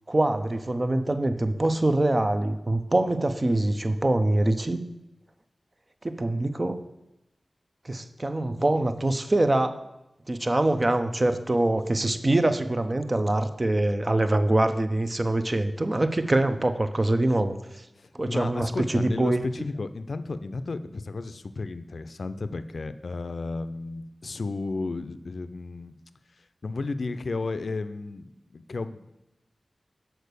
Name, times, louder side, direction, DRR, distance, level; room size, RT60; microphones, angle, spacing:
voice 1, 0.1-4.8 6.0-6.8 7.8-9.7 10.3-17.6 18.1-19.4, right 1 dB, 40° right, 9 dB, 0.6 m, -24 dB
voice 2, 18.0-26.0 26.6-29.1, left 3 dB, 80° left, 11 dB, 0.4 m, -33 dB
6.5 x 4.5 x 6.7 m, 0.94 s
cardioid pair, 40°, 0 cm